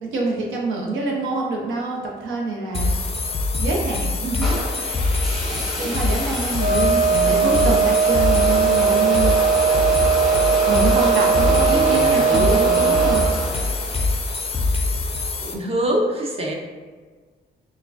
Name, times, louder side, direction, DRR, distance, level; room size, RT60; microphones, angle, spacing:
voice 1, 0.0-3.0 3.6-4.6 4.9-5.0 5.5-9.3 10.7-13.2, right 3 dB, 80° right, -1 dB, 0.8 m, -26 dB
sound 1, 2.7-15.5, left 3 dB, 30° left, 0.4 m, -24 dB
sound 2, 4.4-14.6, right 1 dB, ahead, 0.8 m, -28 dB
Wind instrument woodwind instrument, 6.5-13.3, right 6 dB, 55° right, 1.2 m, -19 dB
voice 2, 7.1-7.8 11.5-13.1 15.4-16.5, right 1 dB, 30° right, 0 dB, 0.6 m, -26 dB
4.6 x 2.2 x 2.5 m, 1.5 s
cardioid pair, 90°, 20 cm